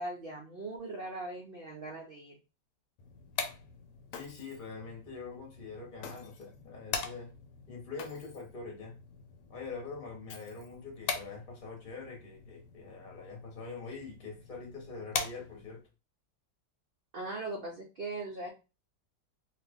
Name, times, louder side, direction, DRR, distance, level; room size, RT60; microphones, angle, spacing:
voice 1, 0.0-2.3 17.1-18.5, right 2 dB, 65° right, 0.5 m, -39 dB
sound 1, 3.0-15.9, left 6 dB, 90° left, 1.3 m, -43 dB
Shatter, 4.1-4.7 6.0-6.6 8.0-8.6 10.3-11.0, left 6 dB, 70° left, 1.1 m, -50 dB
voice 2, 4.1-7.3 7.7-9.0 9.5-15.8, left 4 dB, 35° left, 0.9 m, -44 dB
2.9 x 2.4 x 3.4 m
omnidirectional pair, 1.8 m